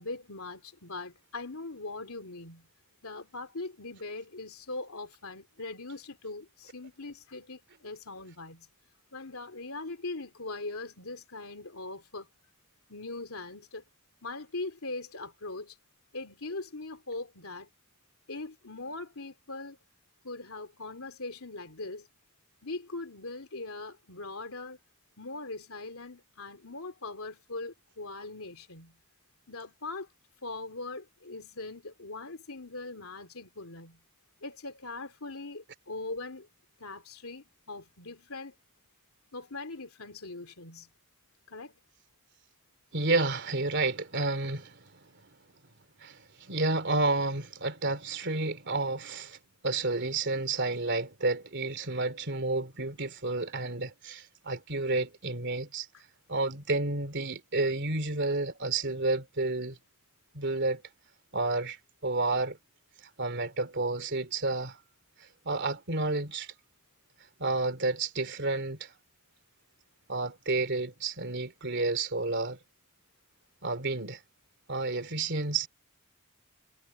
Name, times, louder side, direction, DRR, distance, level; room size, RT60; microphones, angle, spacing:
voice 1, 0.0-2.7 3.0-8.7 9.1-12.3 12.9-13.8 14.2-15.7 16.1-17.7 18.3-19.8 20.2-22.1 22.6-24.8 25.2-29.0 29.5-30.1 30.4-34.0 34.4-36.5 36.8-38.5 39.3-40.9 41.5-41.7, left 3 dB, 80° left, 3.1 m, -41 dB
voice 2, 42.9-45.1 46.0-49.4 49.6-55.9 56.3-59.8 60.3-60.8 61.3-62.6 63.2-64.8 65.4-66.5 67.4-68.9 70.1-72.6 73.6-74.2 74.7-75.7, right 3 dB, 55° right, 3.1 m, -30 dB
head